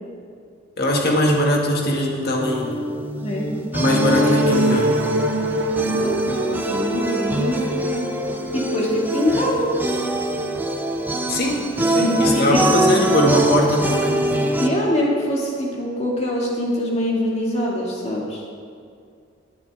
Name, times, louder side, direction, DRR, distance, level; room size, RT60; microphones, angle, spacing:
voice 1, 0.8-2.8 3.7-5.0 11.3-11.6 11.9-14.2, equal, 50° left, -1 dB, 2.0 m, -20 dB
sound 1, 2.4-14.7, right 1 dB, 10° right, 0.7 m, -24 dB
voice 2, 3.2-3.6 5.8-6.2 6.7-8.1 8.5-9.7 12.0-12.6 14.6-18.4, left 1 dB, 30° left, -3 dB, 2.3 m, -24 dB
sound 2, 3.8-11.5, right 1 dB, 60° right, 0.8 m, -26 dB
18.5 x 9.6 x 3.6 m, 2.3 s
head